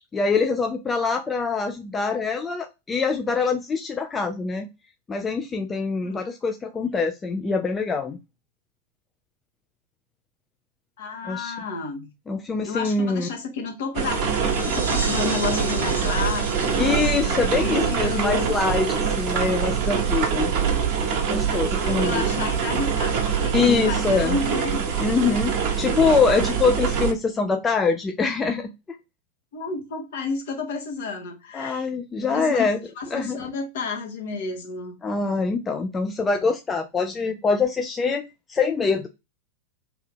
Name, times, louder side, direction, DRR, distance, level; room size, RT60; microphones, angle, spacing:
voice 1, 0.1-4.7 5.1-8.2 11.3-11.5 12.3-13.3 16.8-20.5 21.3-22.2 23.5-24.4 25.0-28.7 31.5-32.8 33.1-33.4 35.0-39.1, left 4 dB, 15° left, 0.4 m, -24 dB
voice 2, 11.0-12.1 12.6-18.5 21.8-24.8 29.5-31.9 32.2-32.6 33.0-35.0, left 4 dB, 55° left, 1.1 m, -31 dB
sound 1, 13.9-27.1, right 6 dB, 40° right, 1.0 m, -24 dB
sound 2, 14.2-19.5, right 1 dB, 80° right, 0.8 m, -37 dB
2.8 x 2.7 x 3.6 m
figure-of-eight pair, 90°, 0 cm